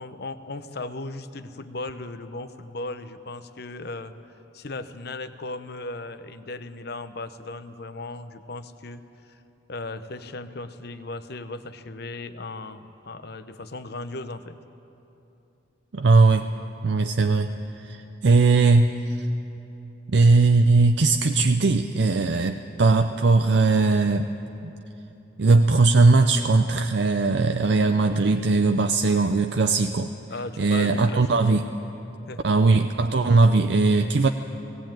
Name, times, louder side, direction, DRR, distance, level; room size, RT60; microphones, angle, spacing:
voice 1, 0.0-4.1 4.5-9.4 9.7-14.6 30.3-31.6 32.3-32.4, left 2 dB, 55° left, 11 dB, 0.8 m, -36 dB
voice 2, 15.9-16.5 16.8-17.5 17.8-19.3 20.1-24.3 25.4-30.1 30.6-31.6 32.4-34.3, right 3 dB, 65° right, 6 dB, 0.6 m, -19 dB
18.0 x 17.0 x 9.1 m, 3.0 s
head